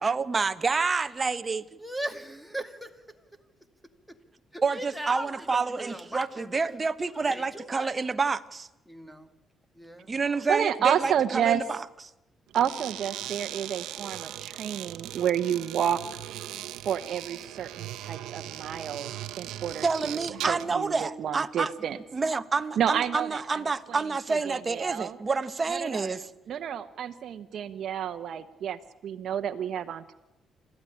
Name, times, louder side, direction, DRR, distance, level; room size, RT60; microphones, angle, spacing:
voice 1, 0.0-1.6 4.6-8.7 10.1-11.8 19.8-21.7 22.1-26.3, right 4 dB, 30° right, 11 dB, 1.0 m, -28 dB
voice 2, 1.8-2.9 4.5-6.6 7.2-7.9 8.9-9.3 9.7-10.1 10.9-11.1, right 1 dB, ahead, 5 dB, 2.3 m, -39 dB
voice 3, 10.5-11.6 12.5-16.0 16.8-22.0 22.8-23.6 23.9-24.0 24.5-25.2 25.7-26.1 26.5-30.1, right 9 dB, 65° right, 7 dB, 1.0 m, -30 dB
sound 1, 12.5-20.8, right 13 dB, 90° right, 0.9 m, -39 dB
28.0 x 12.5 x 10.0 m, 0.95 s
cardioid pair, 90°, 0 cm